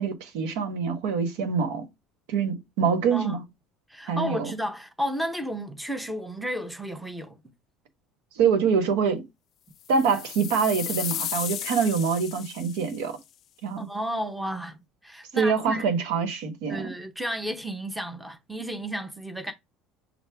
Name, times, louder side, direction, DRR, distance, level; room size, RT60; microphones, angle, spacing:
voice 1, 0.0-1.8 2.3-3.4 4.1-4.5 8.4-9.2 9.9-13.2 13.6-13.9 15.3-16.9, right 6 dB, 80° right, 1.3 m, -25 dB
voice 2, 3.1-3.4 3.9-7.4 13.8-14.8 15.0-15.9 16.7-19.5, equal, ahead, 0.7 m, -32 dB
sound 1, 9.9-13.1, left 11 dB, 40° left, 0.3 m, -34 dB
6.2 x 2.3 x 3.5 m
cardioid pair, 160°, 0 cm